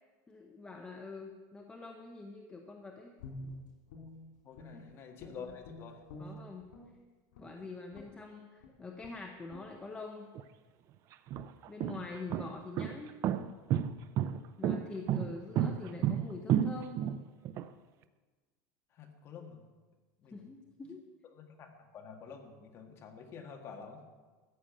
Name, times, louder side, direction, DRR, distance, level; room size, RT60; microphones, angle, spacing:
voice 1, 0.3-3.1 4.7-4.8 6.2-6.7 7.4-10.3 11.7-13.2 14.6-17.0 20.3-21.0, left 3 dB, 10° left, 2 dB, 0.7 m, -45 dB
Guitar, 3.2-4.9 5.2-6.9 7.3-7.5 7.9-8.2 8.6-8.7 9.0-9.2 9.5-9.7, left 1 dB, 85° left, 3.8 m, -48 dB
voice 2, 4.4-6.0 18.9-19.6 20.2-20.5 21.3-24.0, left 6 dB, 25° left, 3 dB, 1.6 m, -48 dB
sound 1, 10.4-10.5 11.1-17.7, right 10 dB, 30° right, 0.5 m, -31 dB
14.0 x 6.9 x 9.1 m, 1.3 s
supercardioid pair, 180°, 10 cm